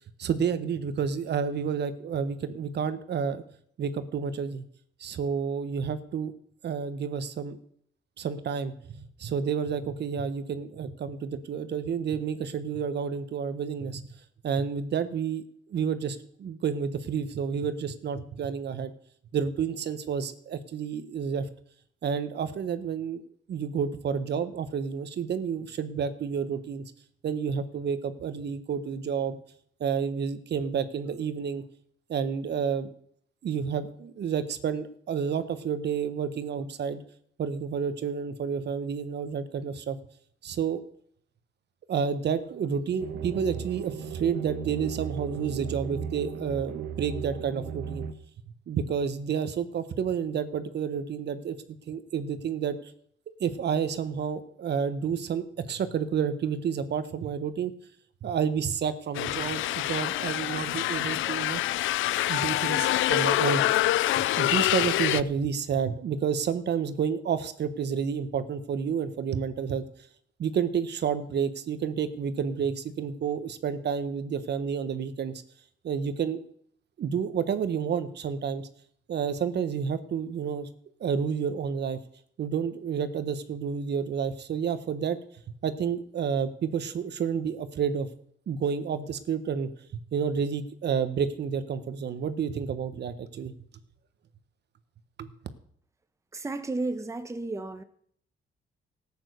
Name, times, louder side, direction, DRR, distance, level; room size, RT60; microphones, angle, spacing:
voice 1, 0.2-3.4 3.8-4.6 5.0-6.3 6.6-7.6 8.2-14.0 14.4-15.4 15.7-18.9 19.3-21.5 22.0-23.2 23.5-26.8 27.2-29.4 29.8-31.6 32.1-32.9 33.4-37.0 37.4-40.0 40.4-40.8 41.9-48.0 48.7-51.6 51.9-52.9 53.4-57.7 58.2-61.6 62.3-63.6 64.2-69.8 70.4-75.3 75.8-76.4 77.0-78.7 79.1-80.7 81.0-82.0 82.4-85.2 85.6-88.1 88.5-89.7 90.1-93.5 95.2-95.3, right 7 dB, 60° right, 12 dB, 1.3 m, -30 dB
sound 1, 43.0-48.1, right 7 dB, 80° right, 1.5 m, -36 dB
sound 2, 59.1-65.2, left 15 dB, 80° left, 0.5 m, -26 dB
voice 2, 96.3-97.8, right 2 dB, 15° right, 9 dB, 1.0 m, -33 dB
14.0 x 9.0 x 6.7 m, 0.64 s
cardioid pair, 90°, 20 cm